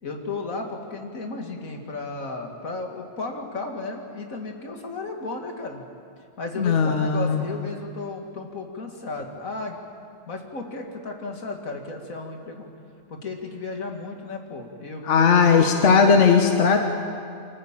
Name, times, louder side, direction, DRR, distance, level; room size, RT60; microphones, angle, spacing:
voice 1, 0.0-5.8 6.4-9.8 10.3-12.7 13.1-15.8, left 3 dB, 85° left, 2 dB, 2.4 m, -34 dB
voice 2, 6.6-7.4 15.0-16.8, left 5 dB, 65° left, 4 dB, 1.5 m, -18 dB
25.0 x 14.5 x 8.8 m, 2.4 s
omnidirectional pair, 1.4 m